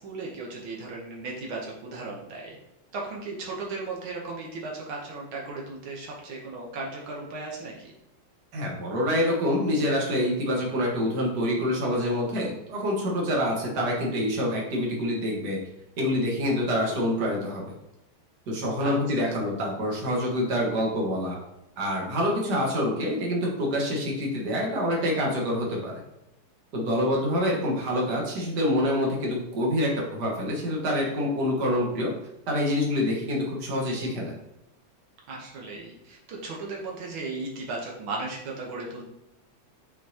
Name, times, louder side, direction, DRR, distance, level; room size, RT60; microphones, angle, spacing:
voice 1, 0.0-2.6 2.9-7.9 18.8-19.3 35.3-39.1, right 3 dB, 85° right, -2 dB, 1.9 m, -36 dB
voice 2, 8.5-15.6 16.0-17.7 18.5-21.4 21.8-26.0 26.7-32.1 32.5-34.3, left 1 dB, 60° right, -2 dB, 2.0 m, -26 dB
8.9 x 4.5 x 2.8 m, 0.88 s
omnidirectional pair, 2.1 m